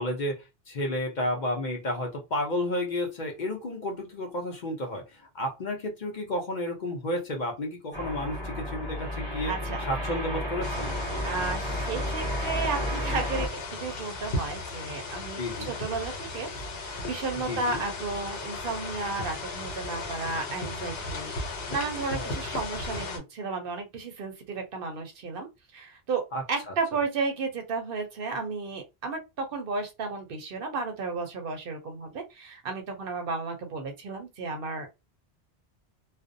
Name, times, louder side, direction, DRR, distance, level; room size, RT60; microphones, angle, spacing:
voice 1, 0.0-9.5 9.9-10.9 15.4-15.7 17.5-17.8 22.1-22.4 26.3-26.4, left 1 dB, 50° left, 0.7 m, -32 dB
sound 1, 7.9-13.5, left 1 dB, 30° right, 0.6 m, -32 dB
voice 2, 9.4-9.8 11.2-16.5 16.9-25.5 25.7-26.2 26.5-34.9, right 4 dB, 60° right, 0.7 m, -33 dB
sound 2, 10.6-23.2, left 2 dB, 65° left, 1.1 m, -36 dB
2.4 x 2.0 x 2.5 m
omnidirectional pair, 1.1 m